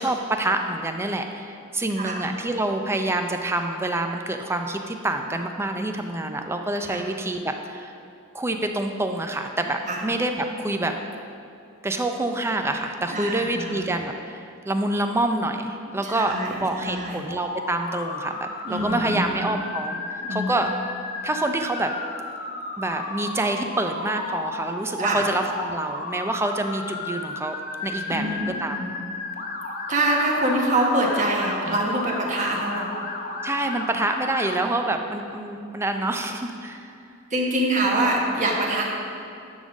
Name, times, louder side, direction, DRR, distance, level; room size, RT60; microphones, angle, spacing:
voice 1, 0.0-7.9 8.3-10.9 11.8-20.7 21.2-21.9 22.8-27.5 27.8-28.8 31.7-31.8 33.4-36.9, right 2 dB, 10° right, 5 dB, 0.5 m, -27 dB
voice 2, 13.1-13.8 16.0-16.5 16.8-17.2 18.6-19.5 20.2-20.5 25.0-25.3 28.1-28.9 29.9-32.9 37.3-38.8, right 1 dB, 35° right, -2 dB, 1.3 m, -25 dB
Motor vehicle (road) / Siren, 17.3-34.6, left 3 dB, 45° left, 0.8 m, -34 dB
10.5 x 3.7 x 6.2 m, 2.5 s
head